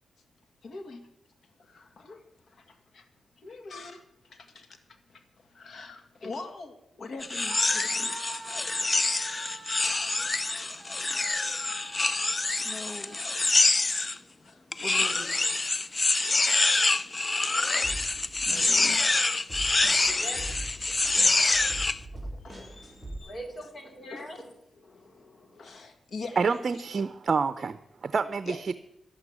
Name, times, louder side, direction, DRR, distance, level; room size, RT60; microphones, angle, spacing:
voice 1, 0.6-1.0 1.6-3.1 3.4-8.2 8.8-9.1 9.5-9.7 10.4-11.5 12.6-13.2 14.4-15.4 16.9-17.1 17.5-17.8 18.5-19.1 19.9-21.8 22.4-23.4 24.1-24.3 25.6-26.6 28.5-28.6, left 3 dB, 65° left, 7 dB, 1.9 m, -44 dB
sound 1, 7.2-14.2 14.7-22.0, left 3 dB, 30° left, 0.5 m, -26 dB
Screaming, 7.4-13.4, right 3 dB, 30° right, 2.3 m, -46 dB
sound 2, 17.8-23.2, right 1 dB, 10° left, 4.1 m, -42 dB
voice 2, 19.7-20.4 23.2-25.8, equal, 45° left, 5 dB, 2.6 m, -44 dB
voice 3, 26.4-28.7, right 5 dB, 55° right, 12 dB, 0.6 m, -28 dB
11.5 x 8.0 x 10.0 m, 0.77 s
cardioid pair, 75°, 0 cm